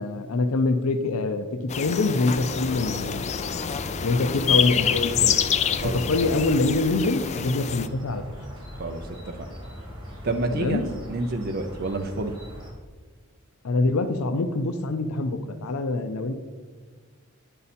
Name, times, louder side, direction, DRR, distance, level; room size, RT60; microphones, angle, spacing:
voice 1, 0.0-1.5 1.8-3.4 4.0-5.4 6.1-8.4 10.5-10.8 13.6-16.4, left 2 dB, 85° left, 8 dB, 0.5 m, -25 dB
sound 1, 1.7-7.9, left 8 dB, 30° left, 0.3 m, -27 dB
sound 2, 2.2-12.7, equal, 20° right, 2.5 m, -40 dB
voice 2, 8.8-9.5 10.2-12.3, right 2 dB, 45° right, 4 dB, 0.5 m, -29 dB
9.7 x 5.5 x 4.2 m, 1.5 s
head